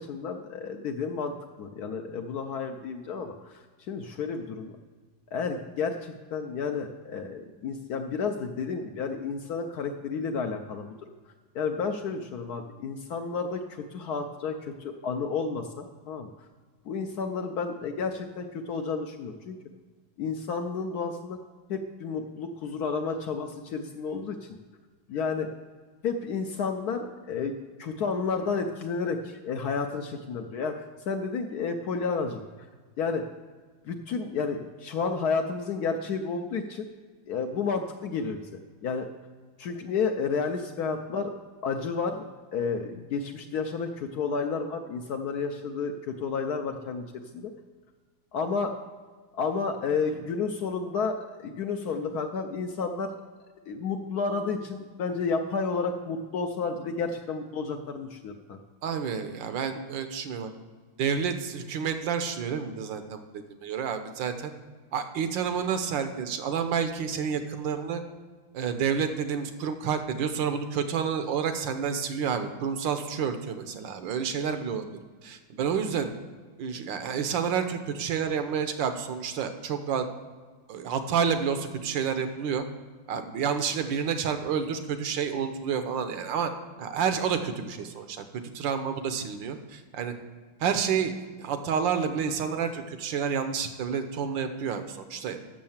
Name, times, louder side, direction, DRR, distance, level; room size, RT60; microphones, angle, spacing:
voice 1, 0.0-4.7 5.3-10.9 11.5-16.3 16.8-19.6 20.2-21.4 21.7-24.5 25.1-25.5 26.0-32.4 33.0-33.2 33.8-36.9 37.3-38.5 38.8-39.1 39.6-41.3 41.6-42.2 42.5-47.1 47.3-47.5 48.3-48.7 49.3-53.1 53.7-58.6, left 5 dB, 70° left, 5 dB, 1.0 m, -31 dB
voice 2, 58.8-60.5 61.0-64.5 64.9-68.0 68.5-74.9 75.2-76.1 76.6-80.1 80.7-82.6 83.1-86.5 86.8-88.2 88.5-90.1 90.6-95.4, right 7 dB, 75° right, 8 dB, 1.4 m, -29 dB
7.6 x 6.4 x 7.1 m, 1.5 s
omnidirectional pair, 2.1 m